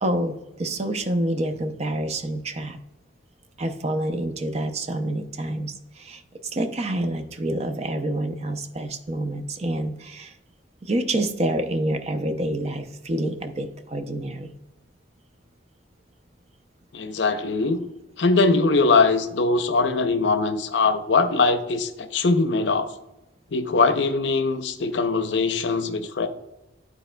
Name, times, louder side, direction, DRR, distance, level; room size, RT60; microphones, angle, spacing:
voice 1, 0.0-2.8 3.6-6.2 6.5-10.3 10.8-14.5, right 1 dB, 35° right, 0.5 m, -27 dB
voice 2, 16.9-17.9 18.2-22.9 23.5-26.3, left 3 dB, 70° left, 0.6 m, -21 dB
11.5 x 4.1 x 2.2 m
head